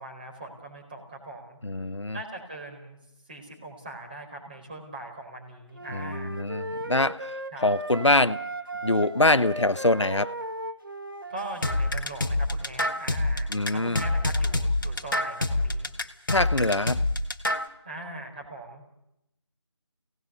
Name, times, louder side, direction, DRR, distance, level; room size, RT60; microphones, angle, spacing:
voice 1, 0.0-1.6 2.1-3.0 3.3-6.4 7.5-7.7 11.3-15.9 17.8-18.8, right 2 dB, 20° right, 1 dB, 4.4 m, -41 dB
voice 2, 1.6-2.2 5.9-8.4 8.8-10.3 13.5-14.0 16.3-17.0, left 2 dB, 75° left, 12 dB, 1.1 m, -24 dB
sound 1, 5.7-11.6, right 1 dB, 45° right, 1.4 m, -37 dB
sound 2, 11.6-17.7, left 2 dB, 45° left, 1.7 m, -26 dB
29.0 x 18.0 x 7.0 m, 0.83 s
figure-of-eight pair, 170°, 15 cm